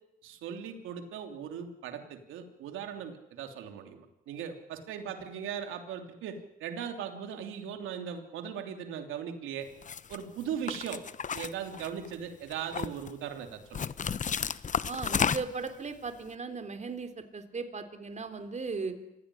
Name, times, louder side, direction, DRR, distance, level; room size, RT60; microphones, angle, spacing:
voice 1, 0.2-9.7 10.1-11.0 11.3-13.9, right 8 dB, 90° right, 6 dB, 3.1 m, -39 dB
sound 1, 9.8-10.2 10.7-12.1 12.5-13.1 13.7-15.7, left 7 dB, 40° left, 0.9 m, -32 dB
voice 2, 14.9-19.0, right 4 dB, 35° right, 8 dB, 3.5 m, -37 dB
26.5 x 16.5 x 10.0 m, 0.88 s
cardioid pair, 90°, 20 cm